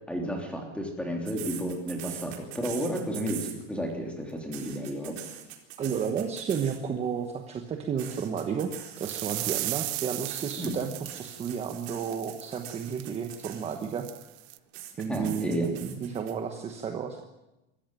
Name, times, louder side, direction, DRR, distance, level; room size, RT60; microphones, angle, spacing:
voice 1, 0.1-5.2 10.6-10.8 15.1-15.7, equal, 5° left, 2 dB, 3.2 m, -32 dB
sound 1, 1.3-3.9 4.3-7.0 8.0-14.0 14.7-16.3, right 12 dB, 70° right, 4.3 m, -43 dB
voice 2, 5.8-8.7 9.0-14.1 15.0-17.2, right 7 dB, 20° right, 5 dB, 1.2 m, -32 dB
sound 2, 9.0-14.6, right 19 dB, 50° right, 0.9 m, -37 dB
23.5 x 14.0 x 9.1 m, 0.98 s
cardioid pair, 175°, 32 cm